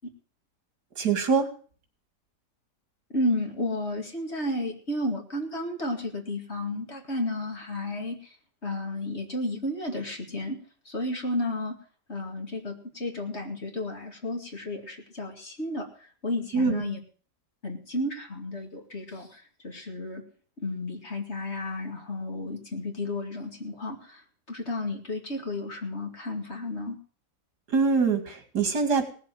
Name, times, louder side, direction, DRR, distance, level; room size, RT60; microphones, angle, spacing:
voice 1, 1.0-1.5 16.5-16.8 27.7-29.1, right 5 dB, 70° right, 7 dB, 2.8 m, -24 dB
voice 2, 3.1-8.4 8.6-10.6 10.9-11.8 12.1-15.9 16.2-17.0 17.6-20.2 20.6-24.2 24.5-27.0, left 1 dB, 40° left, 2 dB, 2.6 m, -32 dB
18.0 x 7.5 x 7.6 m, 0.43 s
omnidirectional pair, 1.8 m